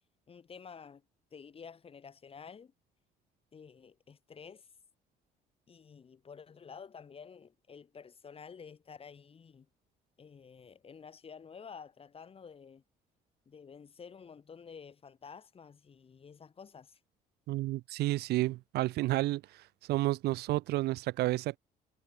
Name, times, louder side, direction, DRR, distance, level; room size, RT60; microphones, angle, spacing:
voice 1, 0.3-1.0 1.3-2.7 3.5-4.7 5.7-9.7 10.2-12.8 13.4-17.0, left 6 dB, 35° left, 3.1 m, -51 dB
voice 2, 17.5-19.4 19.9-21.6, right 17 dB, 75° right, 0.6 m, -30 dB
cardioid pair, 110°, 17 cm